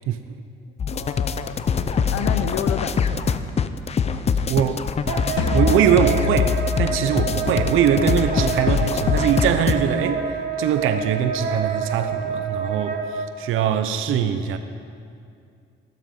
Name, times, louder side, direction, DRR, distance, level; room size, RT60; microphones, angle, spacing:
sound 1, 0.8-9.8, left 6 dB, 30° left, 0.6 m, -23 dB
voice 1, 0.9-1.6 2.1-3.4, left 10 dB, 85° left, 9 dB, 0.7 m, -30 dB
voice 2, 4.5-4.8 5.5-14.6, right 8 dB, 90° right, 9 dB, 0.8 m, -22 dB
Wind instrument woodwind instrument, 5.1-13.3, right 5 dB, 50° right, 1.7 m, -28 dB
sound 2, 5.4-10.5, left 5 dB, 65° left, 1.3 m, -29 dB
15.5 x 12.5 x 5.4 m, 2.4 s
cardioid pair, 135°, 20 cm